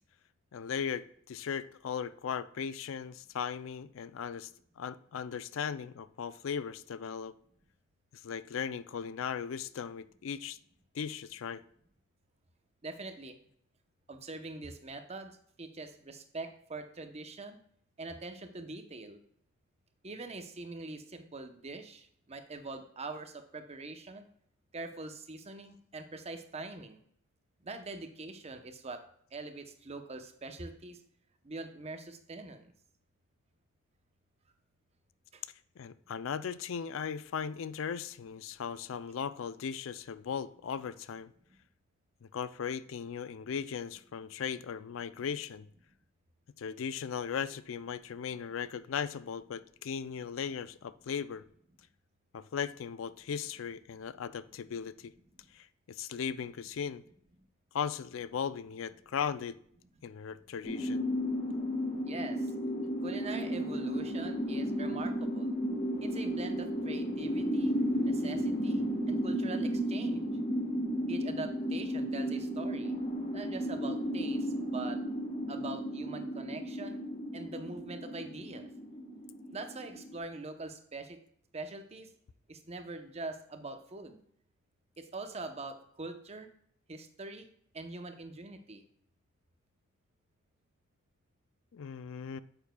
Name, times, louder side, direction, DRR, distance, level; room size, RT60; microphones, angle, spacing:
voice 1, 0.5-4.5 4.8-7.3 8.1-10.6 10.9-11.6 35.8-41.3 42.2-45.7 46.6-51.4 52.3-55.1 55.5-57.0 57.7-59.6 60.0-61.1 91.7-92.4, left 7 dB, 70° left, 16 dB, 0.4 m, -37 dB
voice 2, 12.8-13.4 14.1-17.6 18.0-19.2 20.0-24.3 24.7-27.0 27.6-29.0 29.3-31.0 31.4-32.7 35.3-35.4 62.1-62.5 63.0-65.5 66.0-67.7 68.0-70.3 71.1-72.9 73.3-75.0 75.5-77.0 77.3-78.7 79.5-81.2 81.5-82.1 82.5-84.2 85.0-86.5 86.9-87.5 87.7-88.8, right 3 dB, 30° right, 7 dB, 0.8 m, -43 dB
sound 1, 60.6-80.2, equal, 30° left, 1.3 m, -33 dB
9.0 x 7.2 x 2.3 m, 0.66 s
head